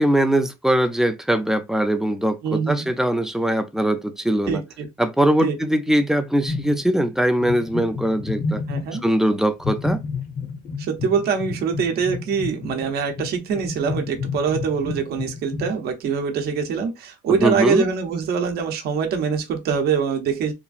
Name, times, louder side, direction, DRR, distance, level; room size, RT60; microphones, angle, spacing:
voice 1, 0.0-4.6 5.0-8.6 9.0-10.0 17.4-17.9, right 1 dB, 5° right, 0.4 m, -21 dB
voice 2, 2.4-2.9 4.5-4.9 5.4-5.6 8.7-9.0 10.8-20.5, right 6 dB, 65° right, 0.7 m, -24 dB
sound 1, 6.5-7.1 7.4-9.1 9.6-15.7, left 4 dB, 55° left, 0.8 m, -30 dB
3.0 x 2.4 x 2.4 m
cardioid pair, 110°, 17 cm